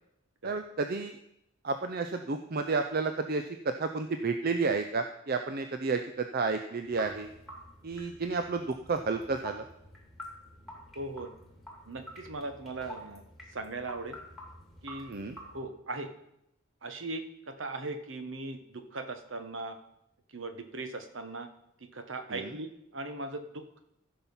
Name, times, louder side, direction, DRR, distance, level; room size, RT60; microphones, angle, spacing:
voice 1, 0.4-1.2 1.6-7.3 7.8-9.6 15.1-15.4 22.3-22.6, right 4 dB, 45° right, 7 dB, 0.5 m, -31 dB
sound 1, 6.8-15.6, equal, ahead, 2.3 m, -49 dB
voice 2, 10.9-11.3 11.9-13.2 13.5-14.2 14.8-15.1 15.5-16.1 16.8-19.8 20.3-21.5 21.8-23.8, right 2 dB, 60° right, 8 dB, 1.1 m, -39 dB
15.0 x 5.7 x 5.5 m, 0.81 s
head